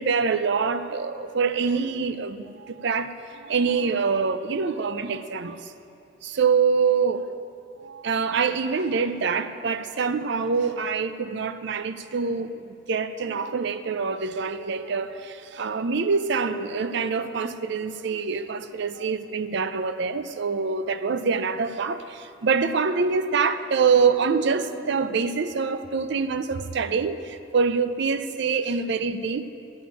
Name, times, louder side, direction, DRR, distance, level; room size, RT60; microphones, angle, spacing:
voice 1, 0.0-2.4 2.7-3.1 3.4-5.6 6.2-7.3 7.8-12.5 12.9-22.0 22.4-27.2 27.5-29.4, right 5 dB, 60° right, 11 dB, 0.5 m, -25 dB
12.0 x 5.1 x 8.7 m, 2.6 s
head